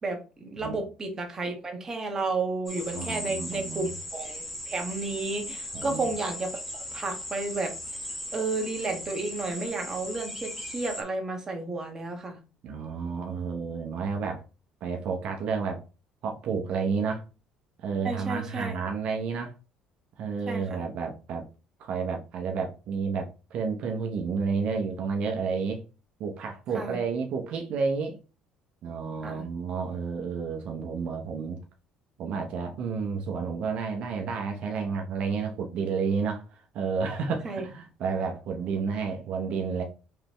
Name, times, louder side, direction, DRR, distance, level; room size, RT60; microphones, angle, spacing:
voice 1, 0.0-7.8 8.3-12.4 18.0-18.8 20.5-20.9 26.7-27.0 29.2-29.5 37.4-37.6, right 3 dB, 25° right, 1.4 m, -32 dB
sound 1, 2.7-11.0, left 1 dB, 5° left, 1.3 m, -38 dB
voice 2, 2.9-3.9 5.7-6.1 12.6-14.4 14.8-15.8 16.2-17.2 17.8-19.5 20.2-21.4 21.8-25.8 26.2-28.2 28.8-31.6 32.2-39.8, right 5 dB, 60° right, 0.9 m, -31 dB
4.9 x 3.3 x 3.1 m
cardioid pair, 110°, 2 cm